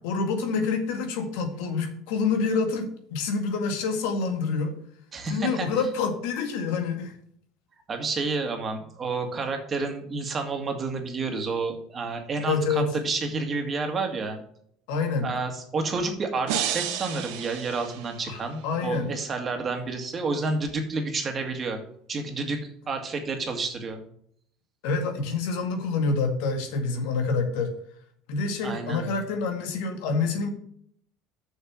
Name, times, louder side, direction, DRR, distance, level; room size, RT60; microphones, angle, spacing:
voice 1, 0.0-4.8 5.3-7.1 12.4-12.9 14.9-15.3 18.3-19.1 24.8-27.7 28.3-30.5, left 4 dB, 85° left, 5 dB, 1.9 m, -27 dB
voice 2, 5.1-5.7 7.9-14.4 15.2-21.8 22.1-24.0 28.6-29.1, right 3 dB, 30° right, 4 dB, 1.9 m, -30 dB
sound 1, 16.5-18.6, right 9 dB, 80° right, 1.2 m, -32 dB
6.8 x 6.5 x 6.2 m, 0.65 s
supercardioid pair, 120°, 0 cm